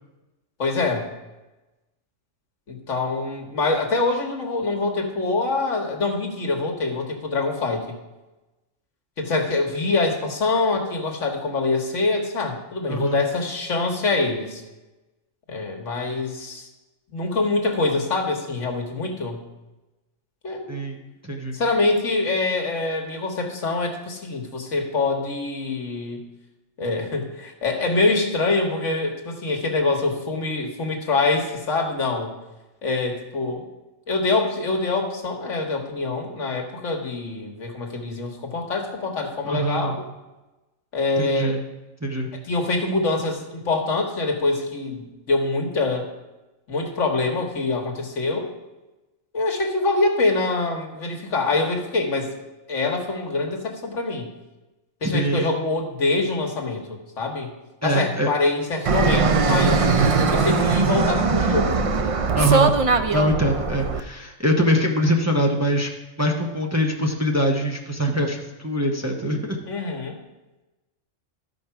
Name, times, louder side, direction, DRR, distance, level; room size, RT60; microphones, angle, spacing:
voice 1, 0.6-1.1 2.7-8.0 9.2-14.6 15.5-16.7 17.1-19.4 20.4-20.8 21.5-26.2 26.8-32.3 32.8-33.7 34.1-40.0 40.9-41.6 42.3-46.1 46.7-48.5 49.3-52.3 52.7-54.3 55.0-57.5 57.8-59.8 60.3-61.9 69.7-70.2, left 3 dB, 80° left, 3 dB, 1.7 m, -25 dB
voice 2, 12.9-13.2 20.7-21.6 39.4-40.0 41.2-41.6 42.0-42.3 55.0-55.5 57.8-58.3 62.3-62.7 63.1-65.9 66.2-69.6, equal, 15° right, 1 dB, 0.8 m, -23 dB
Fixed-wing aircraft airplane, 58.9-64.0, right 4 dB, 50° right, 0.4 m, -20 dB
12.5 x 5.2 x 5.8 m, 1.1 s
omnidirectional pair, 1.3 m